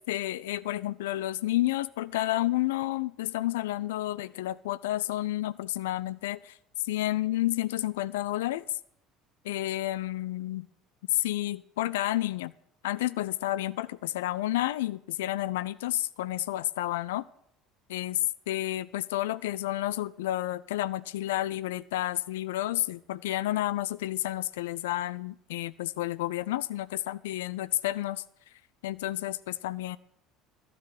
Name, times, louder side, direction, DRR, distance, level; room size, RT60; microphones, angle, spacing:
voice 1, 0.1-6.5 6.8-8.6 9.4-10.7 11.1-12.5 12.8-17.2 17.9-18.2 18.5-28.2 28.8-30.0, left 15 dB, 70° left, 17 dB, 0.4 m, -30 dB
12.5 x 7.6 x 7.3 m, 0.70 s
figure-of-eight pair, 65°, 0 cm